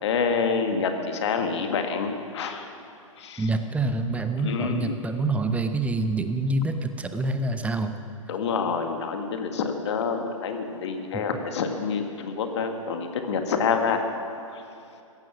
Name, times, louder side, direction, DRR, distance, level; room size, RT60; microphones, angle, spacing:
voice 1, 0.0-2.6 3.2-3.4 4.4-4.9 8.3-14.0, left 5 dB, 55° left, 5 dB, 1.8 m, -27 dB
voice 2, 3.4-7.9 11.1-11.2, right 2 dB, 5° right, 8 dB, 0.8 m, -26 dB
16.5 x 14.0 x 6.1 m, 2.6 s
figure-of-eight pair, 115°, 18 cm